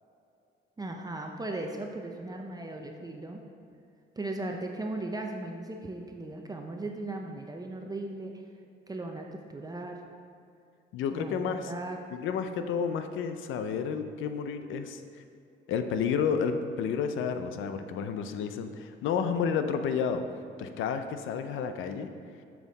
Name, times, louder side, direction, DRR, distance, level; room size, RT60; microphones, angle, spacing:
voice 1, 0.8-3.4 4.2-8.4 8.9-10.0 11.1-12.0, right 2 dB, 20° right, 2 dB, 0.6 m, -37 dB
voice 2, 10.9-11.7 12.1-15.0 15.7-20.3 20.6-22.1, left 6 dB, 80° left, 9 dB, 0.6 m, -31 dB
7.1 x 5.9 x 4.1 m, 2.6 s
cardioid pair, 90°, 20 cm